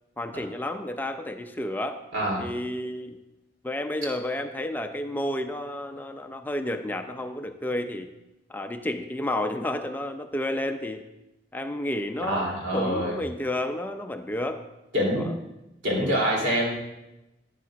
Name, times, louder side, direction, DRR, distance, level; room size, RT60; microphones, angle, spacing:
voice 1, 0.2-2.0 2.4-3.2 3.6-8.1 8.5-11.0 11.5-14.6 15.2-15.3 15.9-16.2, left 1 dB, 10° left, 7 dB, 0.4 m, -31 dB
voice 2, 2.1-2.4 12.2-13.2 14.9-15.3 15.8-16.7, equal, 85° right, -3 dB, 2.8 m, -25 dB
11.5 x 10.0 x 2.4 m, 0.95 s
head